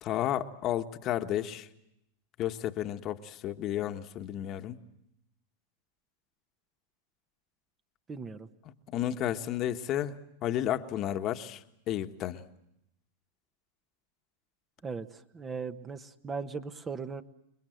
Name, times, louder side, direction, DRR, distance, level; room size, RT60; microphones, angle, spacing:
voice 1, 0.0-1.7 2.4-4.8 8.9-10.1 10.4-12.4, left 11 dB, 40° left, 7 dB, 1.4 m, -32 dB
voice 2, 8.1-8.5 14.8-15.1 15.3-17.2, right 5 dB, 20° right, 10 dB, 1.3 m, -38 dB
29.5 x 21.0 x 7.9 m, 0.78 s
hypercardioid pair, 110°, 0 cm